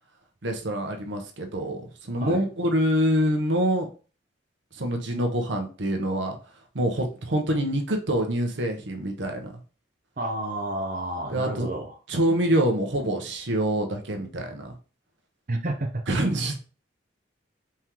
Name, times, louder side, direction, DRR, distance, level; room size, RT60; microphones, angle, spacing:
voice 1, 0.4-3.9 4.7-6.4 6.7-9.5 11.3-11.7 12.1-14.7 16.1-16.6, right 1 dB, 65° right, 0.9 m, -26 dB
voice 2, 10.2-11.9 15.5-16.0, right 1 dB, 45° right, 0.6 m, -30 dB
4.5 x 3.6 x 3.0 m
head